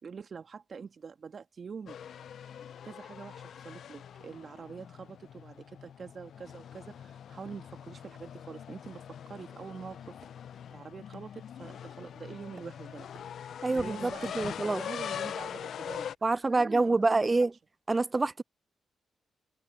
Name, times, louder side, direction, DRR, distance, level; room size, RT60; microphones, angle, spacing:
voice 1, 0.0-2.0 2.4-10.2 10.7-13.1 13.7-16.1 16.5-17.4, right 6 dB, 50° right, 1.6 m, -45 dB
sound 1, 1.9-16.1, left 9 dB, 65° left, 0.5 m, -43 dB
sound 2, 7.7-16.5, right 9 dB, 70° right, 5.3 m, -65 dB
voice 2, 13.6-14.8 16.2-17.5 17.9-18.4, right 3 dB, 30° right, 0.7 m, -27 dB
hypercardioid pair, 45°, 0 cm